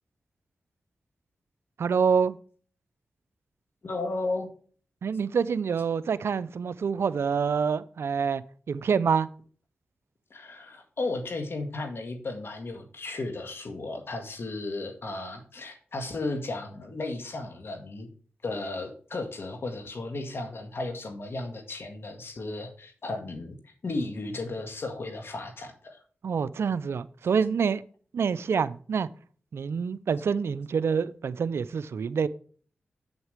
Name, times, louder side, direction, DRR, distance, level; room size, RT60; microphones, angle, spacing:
voice 1, 1.8-2.4 5.0-9.3 26.2-27.8 28.1-29.1 29.5-32.3, right 6 dB, 75° right, 0.5 m, -26 dB
voice 2, 3.8-4.5 10.3-18.1 18.4-26.0, left 2 dB, 65° left, 1.8 m, -34 dB
8.2 x 8.0 x 3.3 m
cardioid pair, 40°, 4 cm